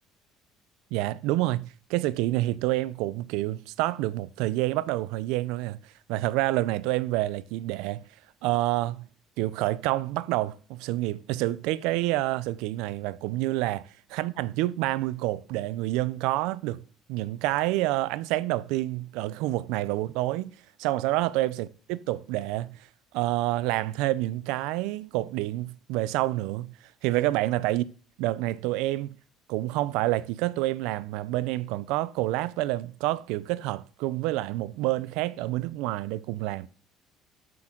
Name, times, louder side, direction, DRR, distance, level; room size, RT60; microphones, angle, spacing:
voice 1, 0.9-8.1 8.4-9.1 9.4-16.8 17.1-20.5 20.8-22.9 23.1-26.7 27.0-27.9 28.2-29.1 29.5-36.7, right 17 dB, 85° right, 0.5 m, -28 dB
12.0 x 6.0 x 3.8 m
cardioid pair, 165°, 0 cm